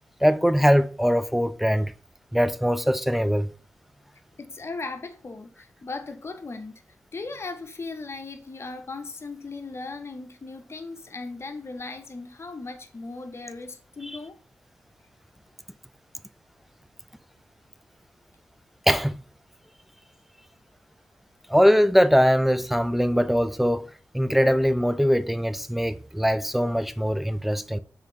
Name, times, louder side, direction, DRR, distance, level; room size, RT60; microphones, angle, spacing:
voice 1, 0.2-1.9 2.3-3.5 18.9-19.2 21.5-23.9 24.1-27.8, equal, 5° right, 0.3 m, -21 dB
voice 2, 4.4-6.8 7.1-14.4, left 3 dB, 45° left, 0.7 m, -37 dB
3.4 x 3.2 x 3.7 m
cardioid pair, 50°, 6 cm